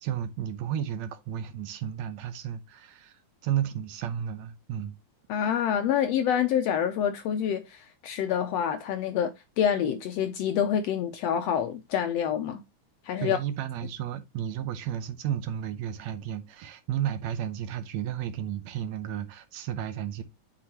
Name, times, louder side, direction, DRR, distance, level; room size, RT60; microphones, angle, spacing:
voice 1, 0.0-5.0 13.2-20.2, right 10 dB, 75° right, 1.8 m, -33 dB
voice 2, 5.3-12.6 13.0-13.4, left 9 dB, 75° left, 1.5 m, -27 dB
8.6 x 5.9 x 2.8 m
omnidirectional pair, 3.5 m